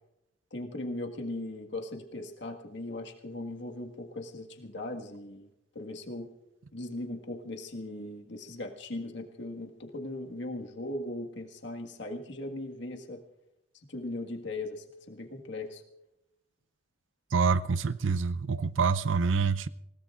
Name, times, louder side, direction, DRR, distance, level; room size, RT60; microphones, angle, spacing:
voice 1, 0.5-5.5 5.8-6.3 6.7-13.2 13.9-15.8, left 2 dB, 65° left, 1.7 m, -38 dB
voice 2, 17.3-19.7, right 5 dB, 85° right, 0.6 m, -26 dB
28.0 x 17.5 x 2.5 m
head